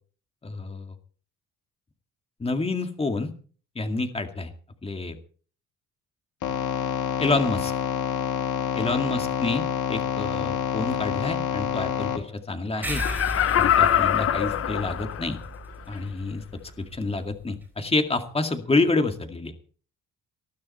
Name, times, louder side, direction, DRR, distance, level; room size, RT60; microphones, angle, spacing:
voice 1, 0.4-0.9 2.4-3.3 3.8-4.5 4.8-5.2 7.2-7.7 8.7-13.0 13.5-15.4 15.9-16.4 16.9-19.5, left 3 dB, 20° left, 6 dB, 2.2 m, -28 dB
sound 1, 6.4-12.2, left 9 dB, 75° left, 2.7 m, -27 dB
Laughter, 12.8-15.5 15.9-16.0, left 10 dB, 45° left, 0.8 m, -23 dB
sound 2, 12.8-17.7, equal, 5° right, 4.5 m, -36 dB
20.0 x 13.0 x 4.4 m, 0.43 s
cardioid pair, 135°, 31 cm